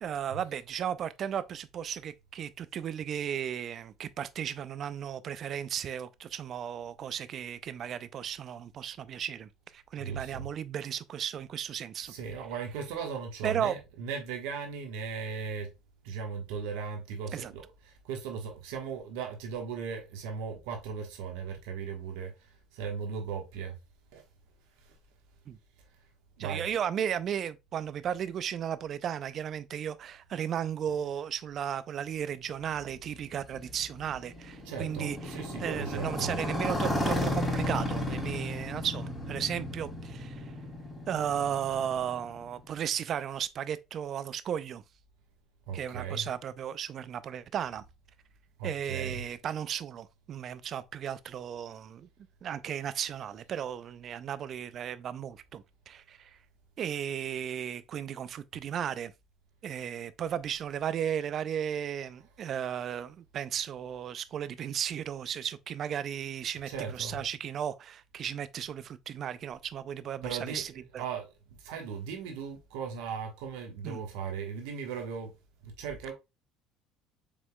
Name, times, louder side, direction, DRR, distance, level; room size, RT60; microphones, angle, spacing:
voice 1, 0.0-12.1 13.4-13.7 17.3-17.5 25.5-25.6 26.4-40.5 41.1-44.8 45.7-47.8 48.6-52.1 52.4-56.3 56.8-59.1 59.6-71.0 73.8-74.0, right 9 dB, 50° right, 0.4 m, -35 dB
voice 2, 10.0-10.5 12.0-15.7 16.0-23.8 24.1-24.2 24.8-24.9 26.4-26.7 30.9-31.0 34.6-36.4 45.7-46.3 48.6-49.3 66.7-67.2 70.2-75.3 75.6-76.1, right 6 dB, 75° right, 1.2 m, -37 dB
Motorcycle, 32.8-42.7, left 1 dB, 15° left, 2.5 m, -34 dB
5.1 x 3.5 x 2.2 m
hypercardioid pair, 70°, 0 cm